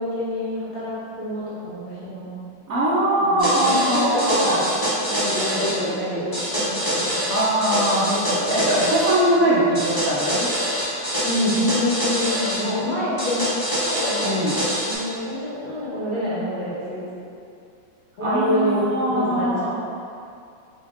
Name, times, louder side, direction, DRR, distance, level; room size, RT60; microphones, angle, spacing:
voice 1, 0.0-2.3 3.2-4.6 5.3-7.2 8.7-8.8 11.2-13.5 13.8-14.4 14.8-17.0 18.2-19.7, left 1 dB, 90° left, -11 dB, 2.3 m, -26 dB
voice 2, 2.7-4.6 4.9-5.9 7.3-10.5 14.2-14.6 18.2-19.7, right 1 dB, 75° right, -9 dB, 0.8 m, -22 dB
sound 1, 3.4-5.8 6.3-9.2 9.7-12.6 13.2-14.9, equal, 15° left, 0.7 m, -25 dB
5.0 x 2.4 x 3.5 m, 2.5 s
omnidirectional pair, 2.4 m